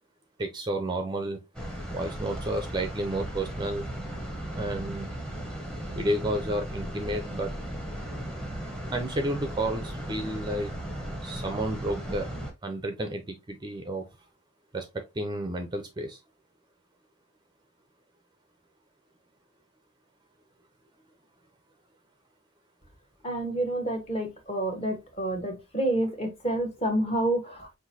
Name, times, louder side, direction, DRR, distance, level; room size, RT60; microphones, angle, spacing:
voice 1, 0.4-1.4 1.9-3.9 4.6-5.1 5.9-7.5 8.9-10.7 11.2-12.3 12.6-14.0 14.7-14.9 15.1-16.2, right 1 dB, 20° right, 0.5 m, -31 dB
sound 1, 1.5-12.5, right 1 dB, 5° left, 0.8 m, -36 dB
voice 2, 23.2-27.8, right 1 dB, 30° left, 1.1 m, -29 dB
5.8 x 2.6 x 2.7 m
head